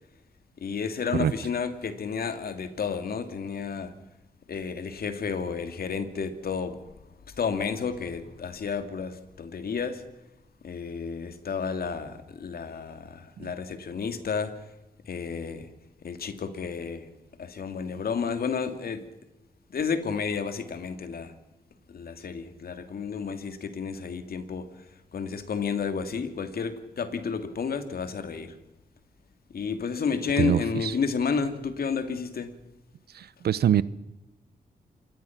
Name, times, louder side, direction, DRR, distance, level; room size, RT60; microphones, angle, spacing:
voice 1, 0.6-3.9 4.5-10.0 10.6-14.7 15.0-15.7 16.0-17.1 17.4-19.1 19.7-21.4 21.9-28.6 29.5-32.5, left 5 dB, 70° left, 9 dB, 2.5 m, -31 dB
voice 2, 30.4-30.9 33.1-33.8, right 9 dB, 80° right, 18 dB, 0.9 m, -24 dB
26.5 x 21.0 x 6.0 m, 0.97 s
cardioid pair, 60°, 16 cm